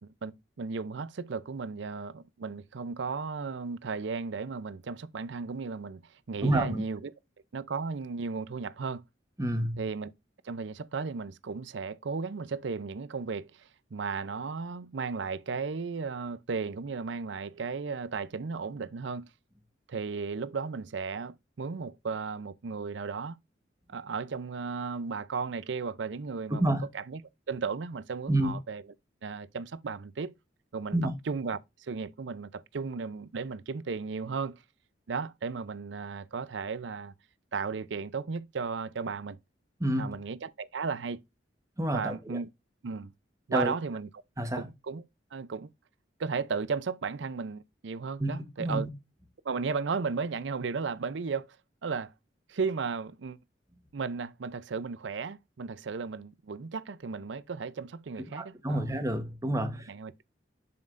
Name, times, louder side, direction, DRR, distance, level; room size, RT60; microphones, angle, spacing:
voice 1, 0.0-7.1 7.5-9.0 9.8-10.1 10.4-19.3 19.9-23.4 23.9-27.2 27.5-28.8 29.2-30.3 30.7-31.0 31.3-34.6 35.1-37.1 37.5-39.4 40.0-41.2 41.9-42.5 42.8-43.1 43.5-44.1 44.5-45.0 45.3-45.7 46.2-48.9 49.4-51.6 51.8-52.1 52.5-53.4 53.9-58.8 59.9-60.1, right 5 dB, 70° right, 0.5 m, -35 dB
voice 2, 6.4-6.8 9.4-9.8 26.6-26.8 28.3-28.5 30.9-31.1 39.8-40.2 41.8-42.4 43.5-43.7 44.4-44.7 48.2-48.3 48.6-48.9 58.3-59.9, right 1 dB, 15° right, 1.1 m, -29 dB
7.4 x 5.8 x 2.5 m
head